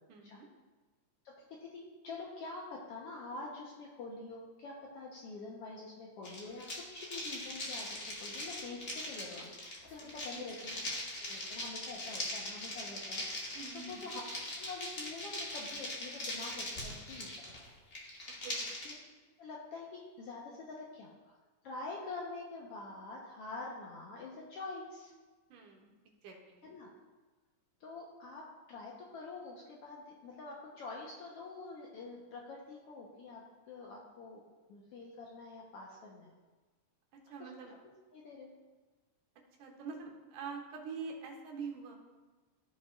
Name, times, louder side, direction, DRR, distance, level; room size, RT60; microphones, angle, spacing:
voice 1, 0.1-0.5 10.0-10.4 13.5-14.1 18.4-18.7 25.5-26.0 26.2-26.7 37.1-37.7 39.6-42.0, right 5 dB, 80° right, 1 dB, 2.5 m, -45 dB
voice 2, 1.2-14.2 14.6-17.3 17.6-17.7 18.8-18.9 19.4-21.4 21.6-25.1 26.6-26.9 27.8-28.4 28.7-33.4 33.7-34.4 34.7-36.3 37.4-37.5 38.1-38.5, left 3 dB, 70° left, -3 dB, 1.5 m, -46 dB
sound 1, 6.2-18.9, left 1 dB, 85° left, 0.6 m, -41 dB
13.5 x 5.3 x 2.3 m, 1.3 s
omnidirectional pair, 3.5 m